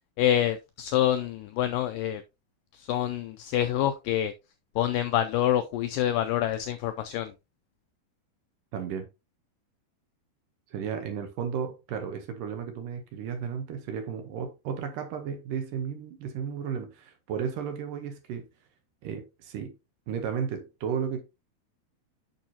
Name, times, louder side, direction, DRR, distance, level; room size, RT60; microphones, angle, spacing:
voice 1, 0.2-2.2 2.8-4.3 4.8-7.3, left 11 dB, 85° left, 1.9 m, -26 dB
voice 2, 8.7-9.1 10.7-18.5 19.0-19.8 20.1-21.2, right 7 dB, 75° right, 2.2 m, -34 dB
8.9 x 6.4 x 2.8 m
omnidirectional pair, 4.5 m